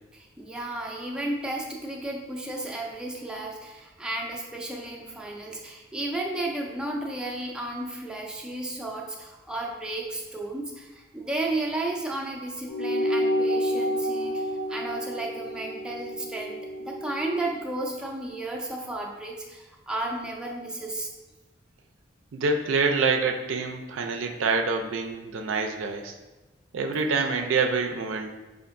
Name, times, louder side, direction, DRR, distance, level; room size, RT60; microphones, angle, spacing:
voice 1, 0.1-21.1, right 2 dB, 5° right, -1 dB, 0.3 m, -33 dB
sound 1, 12.7-17.5, equal, 85° left, 0.7 m, -29 dB
voice 2, 22.3-26.2 26.7-28.3, right 4 dB, 80° right, 4 dB, 0.4 m, -26 dB
5.2 x 2.5 x 2.5 m, 1.2 s
head